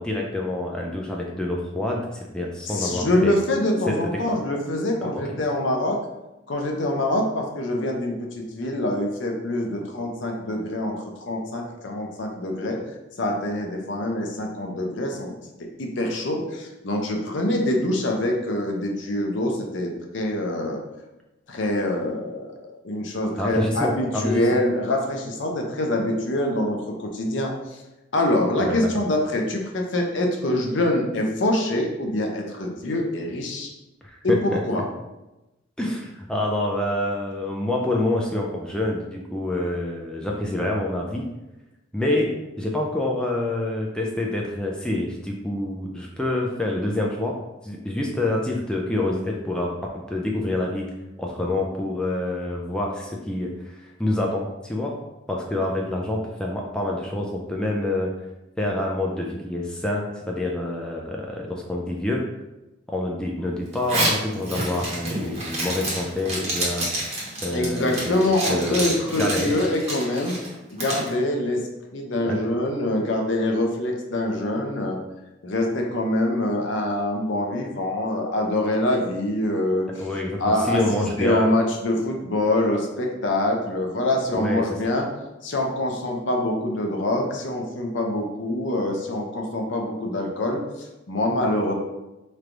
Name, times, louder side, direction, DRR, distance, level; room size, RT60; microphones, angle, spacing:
voice 1, 0.0-3.3 3.9-4.2 23.4-24.5 28.6-28.9 34.0-34.6 35.8-41.3 41.9-42.3 42.6-47.4 47.6-50.9 51.2-54.9 55.3-58.1 58.6-62.2 62.9-66.9 67.4-68.2 68.5-68.8 69.2-69.5 72.3-72.4 80.0-81.5 84.3-84.7, left 1 dB, 5° left, -1 dB, 0.4 m, -27 dB
voice 2, 2.6-6.0 6.5-12.8 13.2-15.3 15.8-20.8 21.5-27.5 28.1-33.7 34.2-34.8 67.5-70.4 70.7-71.6 71.9-75.0 75.4-79.9 80.4-80.8 81.2-85.1 85.4-91.7, left 1 dB, 65° left, 1 dB, 0.7 m, -25 dB
Zipper (clothing), 63.7-71.1, right 1 dB, 35° right, 1.0 m, -29 dB
3.2 x 2.6 x 4.4 m, 1.0 s
head